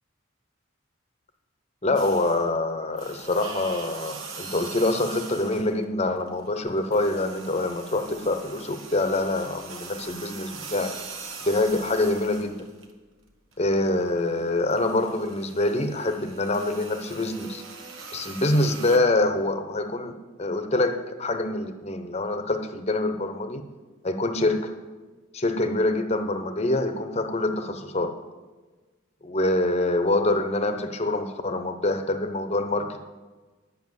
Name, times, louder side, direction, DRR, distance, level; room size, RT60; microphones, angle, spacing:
voice 1, 1.8-10.9 11.4-12.7 13.6-17.6 18.1-23.6 24.0-24.7 25.3-28.1 29.2-33.0, left 2 dB, 30° left, 7 dB, 0.9 m, -25 dB
sound 1, 2.0-2.6 2.9-5.8 6.2-12.9 13.3-19.0, right 4 dB, 80° right, 1.5 m, -41 dB
10.0 x 7.5 x 8.0 m, 1.3 s
head